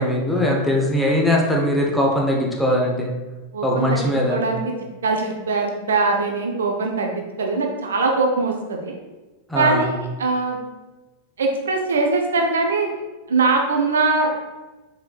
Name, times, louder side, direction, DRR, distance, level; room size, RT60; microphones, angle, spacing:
voice 1, 0.0-3.1 3.6-4.4 9.5-9.8, left 1 dB, 5° left, -2 dB, 0.8 m, -20 dB
voice 2, 3.5-4.7 5.0-9.0 9.5-10.6 11.4-13.0 13.3-14.4, right 3 dB, 65° right, 2 dB, 0.5 m, -22 dB
4.5 x 3.9 x 2.3 m, 1.2 s
figure-of-eight pair, 90°, 0 cm